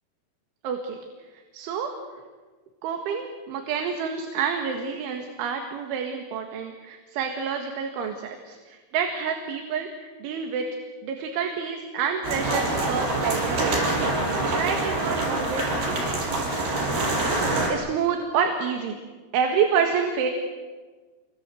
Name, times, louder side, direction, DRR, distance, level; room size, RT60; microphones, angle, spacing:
voice 1, 0.6-1.0 1.5-1.9 2.8-8.6 8.9-9.9 10.2-10.6 11.0-14.0 14.5-15.7 17.7-19.0 19.3-20.3, right 6 dB, 75° right, 4 dB, 4.2 m, -28 dB
sound 1, 12.2-17.7, right 2 dB, 55° right, 6.8 m, -25 dB
29.0 x 24.5 x 7.8 m, 1.4 s
omnidirectional pair, 5.6 m